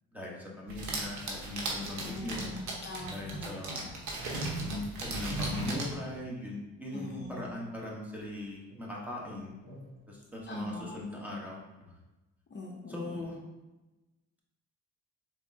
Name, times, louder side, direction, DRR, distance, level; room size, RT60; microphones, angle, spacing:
voice 1, 0.1-2.5 3.1-3.8 4.6-9.5 10.1-11.9 12.9-13.4, left 1 dB, 5° right, -4 dB, 1.1 m, -40 dB
sound 1, 0.7-5.9, right 2 dB, 70° right, 1.1 m, -36 dB
voice 2, 1.8-3.9 6.9-7.6 10.5-11.1 12.5-13.3, left 2 dB, 40° left, -2 dB, 0.6 m, -43 dB
sound 2, 5.6-6.5 6.9-8.4 8.7-11.2, left 1 dB, 40° right, 1.5 m, -54 dB
4.4 x 3.5 x 2.7 m, 1.1 s
cardioid pair, 90°, 30 cm